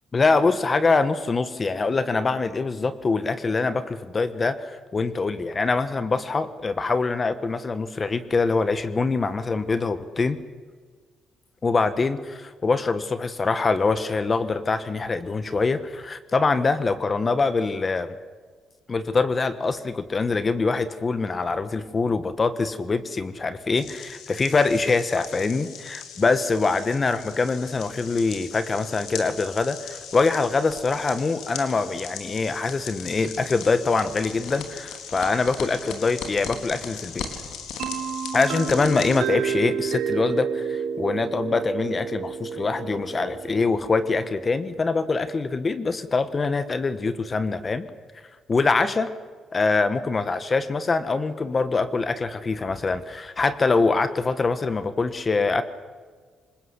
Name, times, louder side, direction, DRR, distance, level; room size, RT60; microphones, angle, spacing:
voice 1, 0.1-10.4 11.6-18.2 18.9-37.3 38.3-47.9 48.5-49.1 49.5-55.6, left 4 dB, 35° left, 12 dB, 1.4 m, -24 dB
sound 1, 23.7-39.2, left 7 dB, 85° left, 3.8 m, -38 dB
sound 2, 37.8-45.4, right 7 dB, 85° right, 2.5 m, -31 dB
26.5 x 20.0 x 8.3 m, 1.5 s
cardioid pair, 90°, 0 cm